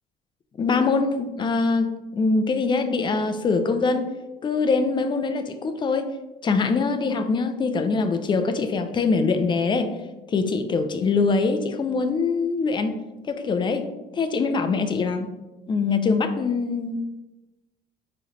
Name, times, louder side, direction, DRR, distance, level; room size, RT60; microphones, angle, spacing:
voice 1, 0.6-4.1 4.4-6.1 6.4-9.9 10.3-13.0 13.3-13.9 14.1-15.3 15.7-17.0, left 4 dB, 30° left, 8 dB, 0.4 m, -23 dB
4.6 x 3.1 x 3.0 m, 1.1 s
cardioid pair, 110°, 17 cm